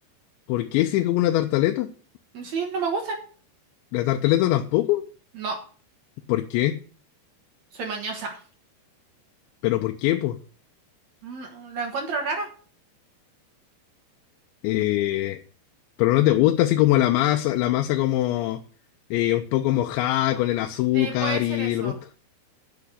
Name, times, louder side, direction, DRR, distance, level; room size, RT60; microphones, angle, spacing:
voice 1, 0.5-1.9 3.9-5.0 6.3-6.7 9.6-10.4 14.6-15.4 16.0-18.6 19.1-21.9, left 14 dB, 85° left, 5 dB, 3.0 m, -22 dB
voice 2, 2.3-3.2 5.3-5.6 7.7-8.4 11.2-12.5 20.9-22.0, right 4 dB, 60° right, 3 dB, 1.9 m, -30 dB
8.6 x 6.8 x 8.0 m, 0.40 s
omnidirectional pair, 5.1 m